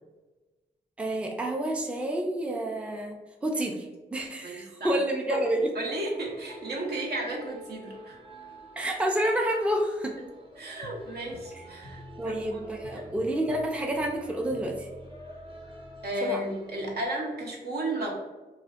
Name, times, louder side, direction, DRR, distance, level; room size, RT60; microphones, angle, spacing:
voice 1, 1.0-3.1 3.4-3.9 4.1-5.7 8.8-10.1 12.2-14.9 16.2-16.4, right 1 dB, 5° right, 1 dB, 0.4 m, -29 dB
voice 2, 4.4-4.9 5.3-5.4 5.7-8.2 10.6-12.6 12.9-13.0 16.0-18.1, right 1 dB, 65° right, -1 dB, 0.6 m, -33 dB
sound 1, 6.1-17.1, right 1 dB, 30° right, 0.8 m, -49 dB
sound 2, 10.8-16.1, left 1 dB, 60° left, 0.4 m, -49 dB
2.4 x 2.1 x 2.3 m, 1.2 s
supercardioid pair, 45°, 18 cm